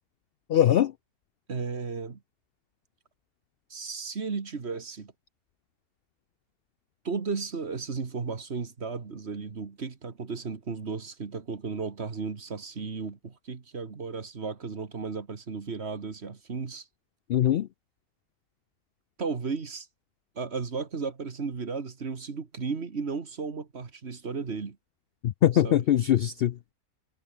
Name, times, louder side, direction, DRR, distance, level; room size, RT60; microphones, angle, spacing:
voice 1, 0.5-0.9 17.3-17.7 25.2-26.7, left 11 dB, 85° left, 0.5 m, -22 dB
voice 2, 1.5-2.2 3.7-5.1 7.0-16.9 19.2-19.9 20.4-24.8 25.5-25.8, right 5 dB, 45° right, 1.9 m, -34 dB
omnidirectional pair, 1.6 m